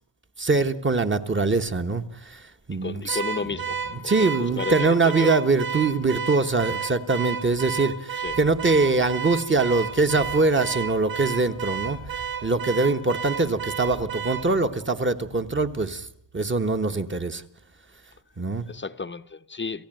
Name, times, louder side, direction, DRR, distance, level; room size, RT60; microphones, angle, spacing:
voice 1, 0.4-3.2 4.0-12.0 12.4-16.1 16.3-17.4 18.4-18.6, right 3 dB, 25° right, 1.3 m, -23 dB
voice 2, 2.8-5.3 8.2-8.4 18.7-19.9, left 4 dB, 25° left, 0.9 m, -33 dB
Car / Alarm, 3.1-14.5, right 7 dB, 50° right, 3.2 m, -32 dB
sound 1, 8.2-17.1, right 3 dB, 80° right, 6.4 m, -48 dB
29.0 x 15.0 x 9.1 m
wide cardioid pair, 140°, 45 cm